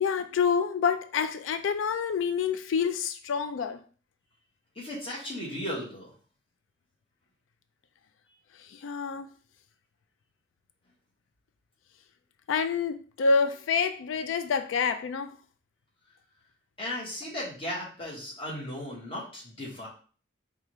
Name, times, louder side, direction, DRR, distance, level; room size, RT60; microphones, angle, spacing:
voice 1, 0.0-3.8 8.8-9.3 12.5-15.3, left 5 dB, 80° left, 0.3 m, -27 dB
voice 2, 4.7-6.1 16.8-19.9, left 1 dB, 30° left, 1.3 m, -36 dB
4.6 x 2.4 x 3.0 m
head